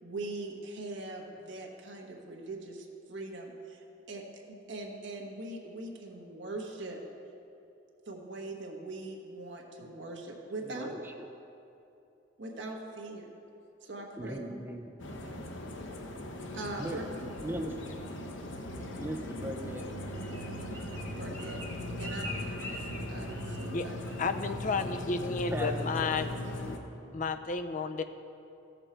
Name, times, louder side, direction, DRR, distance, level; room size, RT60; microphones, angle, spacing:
voice 1, 0.0-7.0 8.0-10.9 12.4-13.3 13.8-14.4 15.2-15.4 16.5-17.0 18.7-18.9 20.3-20.8 21.2-24.6, right 2 dB, 70° right, 0 dB, 1.4 m, -42 dB
voice 2, 10.7-11.1 14.2-14.9 16.8-17.0 17.4-17.7 19.0-19.8 25.5-26.3, right 1 dB, 10° right, 3 dB, 0.6 m, -38 dB
sound 1, 15.0-26.8, left 1 dB, 85° left, 0.9 m, -39 dB
Bird, 19.7-23.8 24.0-24.4 24.7-25.0 25.4-25.8 26.2-26.3, left 1 dB, 10° left, 1.2 m, -45 dB
voice 3, 24.2-26.3 27.1-28.0, left 4 dB, 45° left, 8 dB, 0.5 m, -32 dB
14.0 x 6.7 x 4.4 m, 2.8 s
head